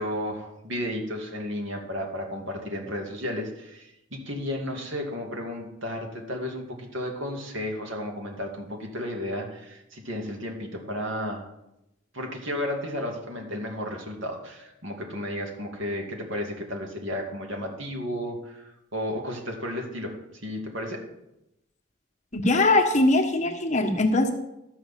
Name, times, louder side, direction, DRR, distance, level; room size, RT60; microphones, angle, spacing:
voice 1, 0.0-11.4 12.1-20.1 20.4-21.0, left 1 dB, 70° right, 1 dB, 2.7 m, -33 dB
voice 2, 22.3-24.3, left 2 dB, 35° left, 2 dB, 1.3 m, -21 dB
13.5 x 6.4 x 7.5 m, 0.89 s
head